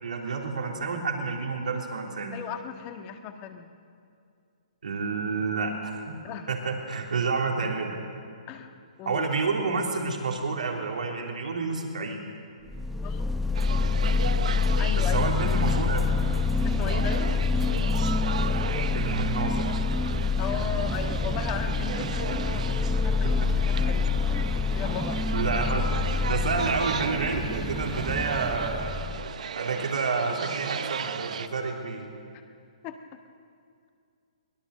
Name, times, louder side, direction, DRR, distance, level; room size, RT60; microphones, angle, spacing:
voice 1, 0.0-2.4 4.8-6.1 6.5-8.0 9.0-12.2 15.1-16.1 18.9-19.6 23.7-23.8 25.1-26.0 26.3-29.0 29.5-32.1, right 4 dB, 90° right, 1 dB, 3.4 m, -29 dB
voice 2, 2.3-3.7 6.2-6.5 8.5-8.7 9.0-9.3 13.0-13.4 14.8-15.3 16.6-17.3 20.4-24.2 24.5-25.3 32.8-33.0, left 8 dB, 30° left, 6 dB, 1.6 m, -36 dB
sound 1, 12.7-29.3, left 4 dB, ahead, 0.8 m, -27 dB
sound 2, 13.5-31.5, right 7 dB, 70° right, 0.9 m, -36 dB
23.0 x 18.5 x 6.6 m, 2.3 s
hypercardioid pair, 150°, 4 cm